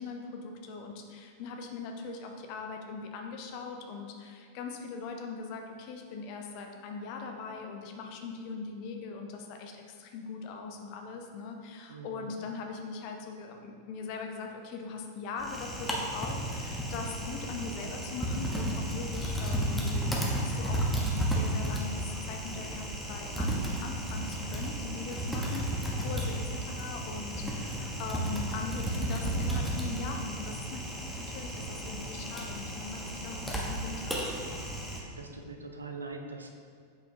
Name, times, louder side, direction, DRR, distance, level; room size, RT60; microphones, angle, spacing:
voice 1, 0.0-34.3, left 4 dB, 45° left, 3 dB, 0.7 m, -41 dB
voice 2, 11.9-12.3 34.9-36.5, right 3 dB, 75° right, 4 dB, 0.5 m, -43 dB
Typing, 15.4-35.0, right 1 dB, ahead, 0.9 m, -33 dB
7.9 x 4.2 x 2.8 m, 2.1 s
figure-of-eight pair, 90°, 0 cm